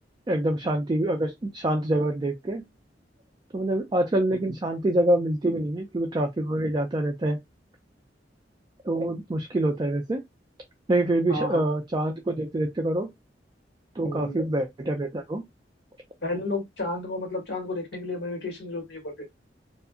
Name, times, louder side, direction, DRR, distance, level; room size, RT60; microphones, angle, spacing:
voice 1, 0.3-2.6 3.5-7.4 8.8-10.2 10.9-13.1 14.0-15.4, right 1 dB, 25° right, 0.3 m, -26 dB
voice 2, 11.3-11.6 14.0-14.4 16.2-19.3, left 2 dB, 70° left, 1.2 m, -32 dB
2.7 x 2.4 x 2.4 m
head